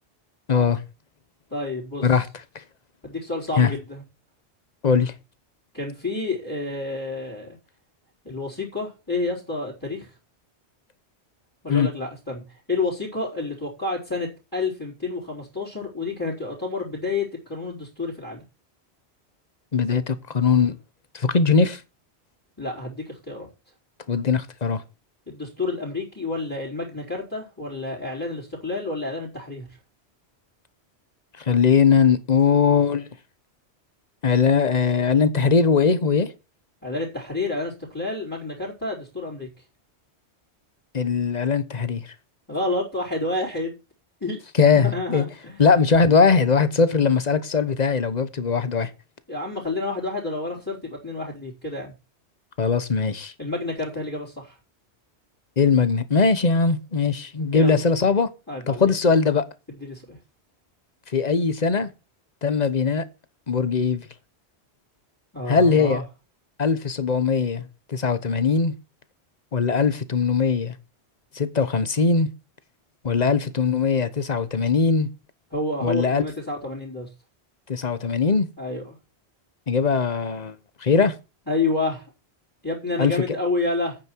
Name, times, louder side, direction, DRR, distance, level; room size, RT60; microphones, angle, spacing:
voice 1, 0.5-0.8 2.0-2.3 3.6-3.7 4.8-5.1 11.7-11.9 19.7-20.8 21.1-21.8 24.1-24.8 31.4-33.1 34.2-36.3 40.9-42.0 44.6-45.2 45.6-48.9 52.6-53.3 55.6-58.3 58.7-59.4 61.1-61.9 62.4-63.0 63.5-64.1 65.5-66.0 66.6-68.7 69.5-70.7 71.3-72.3 73.0-75.1 75.8-76.2 77.7-78.5 79.7-80.6 80.8-81.1 83.0-83.2, left 5 dB, 40° left, 1.1 m, -20 dB
voice 2, 1.5-2.1 3.0-4.0 5.7-7.6 8.2-10.1 11.6-12.4 12.7-18.4 22.6-23.5 25.3-29.7 36.8-39.5 42.5-43.7 44.2-44.4 44.7-45.6 49.3-51.9 53.4-54.6 57.5-57.8 58.5-58.9 59.7-60.2 65.3-66.0 75.5-77.1 78.6-79.0 81.5-82.1 82.6-84.0, left 2 dB, 15° left, 4.4 m, -29 dB
9.6 x 9.1 x 4.6 m
omnidirectional pair, 1.1 m